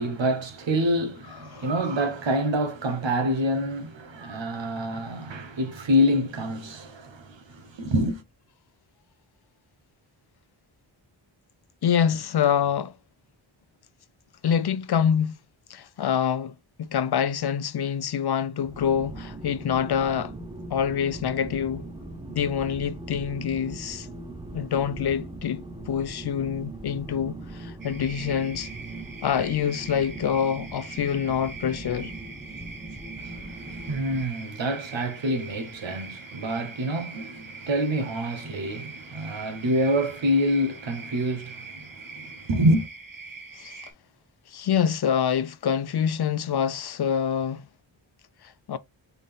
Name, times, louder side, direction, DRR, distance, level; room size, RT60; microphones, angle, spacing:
voice 1, 0.0-8.2 33.2-42.9, equal, 65° right, 1.2 m, -27 dB
voice 2, 11.8-12.9 14.4-15.4 15.7-20.3 20.7-21.8 22.3-24.1 24.5-28.7 29.2-32.1 43.5-43.8 44.5-47.6 48.4-48.8, left 8 dB, 55° left, 0.5 m, -26 dB
sound 1, 18.6-34.3, right 2 dB, 10° right, 0.7 m, -40 dB
sound 2, 27.8-43.9, right 4 dB, 45° right, 1.3 m, -43 dB
4.0 x 3.5 x 3.6 m
wide cardioid pair, 80°, 48 cm